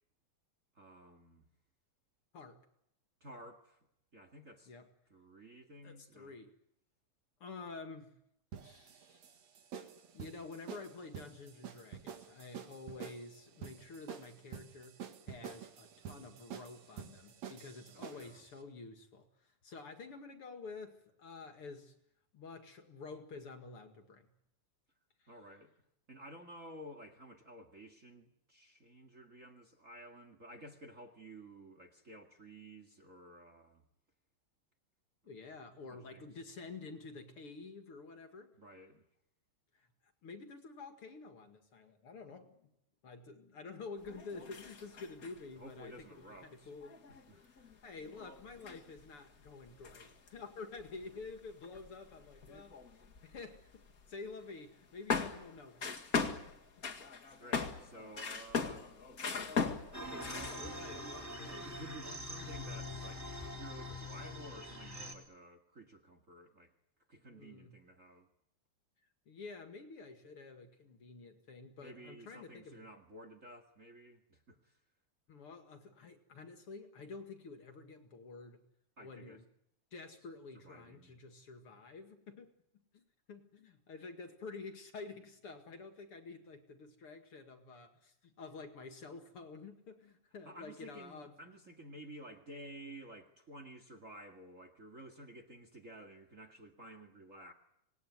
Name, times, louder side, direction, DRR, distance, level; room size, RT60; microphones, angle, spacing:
voice 1, 0.7-1.4 3.2-3.9 4.1-4.7 5.1-6.4 17.9-18.4 25.3-25.7 26.1-33.8 35.9-36.3 38.6-39.0 45.5-46.7 47.1-47.8 57.4-59.0 59.3-60.6 61.5-66.7 67.1-68.3 71.8-74.8 79.0-79.4 80.5-81.2 90.5-97.5, right 1 dB, 30° right, 2.0 m, -53 dB
voice 2, 5.8-6.5 7.4-8.2 8.6-9.2 10.1-15.0 15.3-21.9 22.3-24.3 25.2-25.3 35.2-38.5 39.7-39.9 40.2-42.7 43.0-47.0 47.4-56.9 60.0-61.7 62.4-62.7 67.3-67.8 69.3-72.8 75.3-78.6 79.0-79.5 79.9-82.5 82.9-83.0 83.3-91.4, left 4 dB, 50° left, 2.8 m, -50 dB
sound 1, 8.5-18.4, right 7 dB, 65° right, 3.1 m, -48 dB
sound 2, 44.0-45.4 46.0-46.1 46.3-46.4 46.8-54.1 54.4-54.5 55.1-60.9 61.2-61.9, left 5 dB, 35° left, 2.1 m, -40 dB
sound 3, 59.9-65.1, left 1 dB, 5° right, 3.3 m, -44 dB
26.5 x 19.5 x 9.6 m
omnidirectional pair, 3.3 m